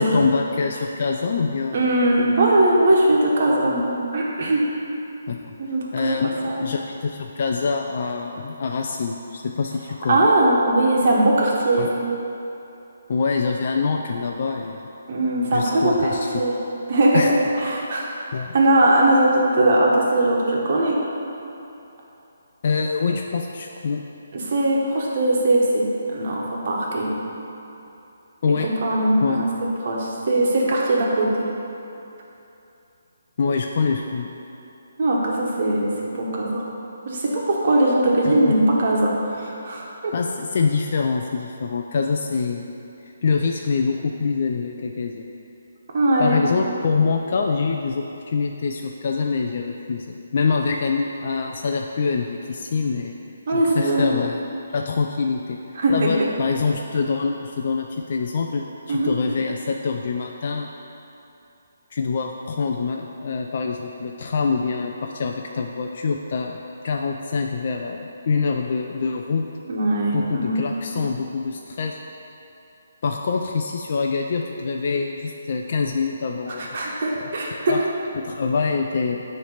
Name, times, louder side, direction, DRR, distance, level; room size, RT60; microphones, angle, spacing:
voice 1, 0.0-1.9 5.3-5.5 5.9-10.3 11.8-11.9 13.1-14.8 15.5-16.5 17.1-17.3 17.8-17.9 18.3-18.5 22.6-24.0 28.4-28.7 29.2-29.4 33.4-34.3 38.3-38.5 40.1-42.7 43.2-45.2 46.2-53.1 53.5-54.4 54.7-55.6 55.9-60.7 61.9-69.4 70.1-71.9 73.0-76.7 77.2-77.3 77.7-77.8 78.2-79.2, left 5 dB, 50° left, 2 dB, 0.4 m, -25 dB
voice 2, 1.7-4.6 5.6-6.6 10.1-11.9 15.1-15.9 16.3-16.6 16.9-17.2 17.6-18.2 18.5-21.0 24.3-27.2 28.6-29.5 29.8-31.5 35.0-36.7 37.0-40.1 45.9-46.4 53.5-54.1 55.8-56.1 58.9-59.1 69.7-70.7 76.6-77.7, right 1 dB, 50° right, -3 dB, 1.4 m, -20 dB
9.4 x 3.3 x 5.7 m, 2.8 s
hypercardioid pair, 160°, 0 cm